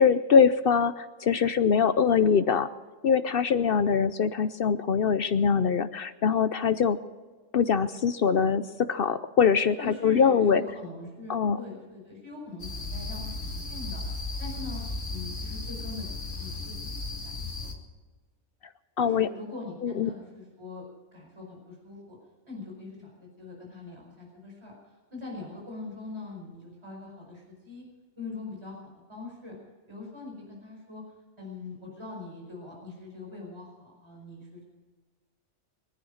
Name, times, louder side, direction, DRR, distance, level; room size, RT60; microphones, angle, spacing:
voice 1, 0.0-2.7 3.0-7.0 7.5-10.6 11.3-11.6 19.0-19.3 19.8-20.1, left 6 dB, 60° left, 13 dB, 0.7 m, -23 dB
voice 2, 9.8-14.8 15.1-16.7 17.0-17.3 17.6-17.7 19.0-20.8 21.1-22.2 22.4-24.7 25.1-27.8 28.2-28.8 29.1-29.6 29.9-31.0 31.4-34.6, left 3 dB, 20° right, -1 dB, 5.0 m, -42 dB
sound 1, 12.6-17.7, left 3 dB, 75° left, 2.5 m, -35 dB
22.5 x 10.0 x 6.4 m, 1.4 s
omnidirectional pair, 1.3 m